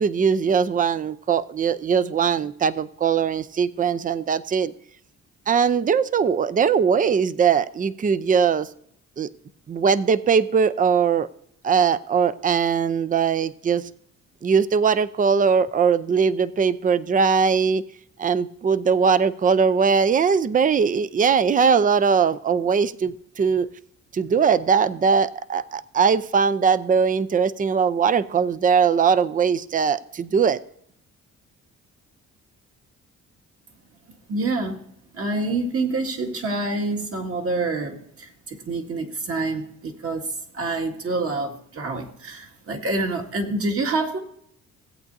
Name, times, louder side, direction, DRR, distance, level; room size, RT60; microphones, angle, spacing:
voice 1, 0.0-4.7 5.5-8.7 9.2-9.3 9.7-11.3 11.6-13.8 14.4-17.8 18.2-23.7 24.1-30.6, right 6 dB, 25° right, 14 dB, 0.5 m, -20 dB
voice 2, 34.3-34.8 35.1-44.2, right 2 dB, 50° right, 2 dB, 2.0 m, -27 dB
17.5 x 8.4 x 2.7 m, 0.67 s
cardioid pair, 90°, 30 cm